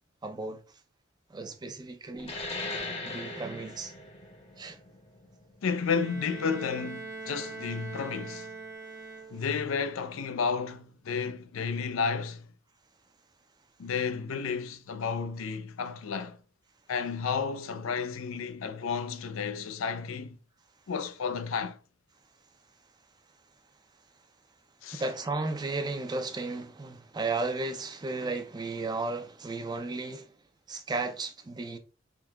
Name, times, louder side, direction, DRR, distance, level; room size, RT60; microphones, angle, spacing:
voice 1, 0.2-0.6 1.3-2.3 3.0-3.9 4.6-4.8 24.9-30.3 30.7-31.8, right 3 dB, 20° right, 0.4 m, -34 dB
sound 1, 2.2-7.3, left 2 dB, 30° left, 0.8 m, -40 dB
voice 2, 5.6-8.5 9.3-12.5 13.8-16.4 16.9-20.4 20.9-21.8 24.8-25.0, left 5 dB, 90° left, 0.4 m, -32 dB
Bowed string instrument, 5.8-9.7, right 3 dB, 55° right, 0.7 m, -42 dB
3.7 x 2.8 x 2.3 m
head